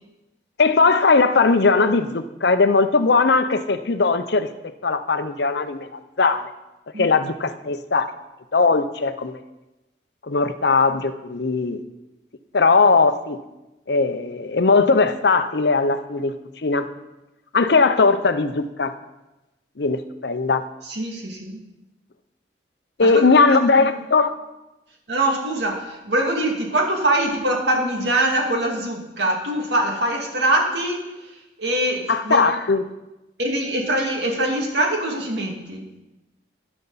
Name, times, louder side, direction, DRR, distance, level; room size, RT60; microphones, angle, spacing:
voice 1, 0.6-4.5 4.8-6.5 7.0-8.1 8.5-9.4 10.3-11.8 12.5-13.4 13.9-16.3 16.6-16.9 17.5-18.9 19.8-20.6 23.0-24.3 32.1-32.8, left 4 dB, 65° left, 10 dB, 0.7 m, -19 dB
voice 2, 20.8-21.6 23.0-23.2 23.5-23.9 25.1-31.1 31.6-32.5 33.4-35.9, right 1 dB, 65° right, 1 dB, 2.3 m, -23 dB
12.5 x 10.5 x 4.1 m, 1.0 s
head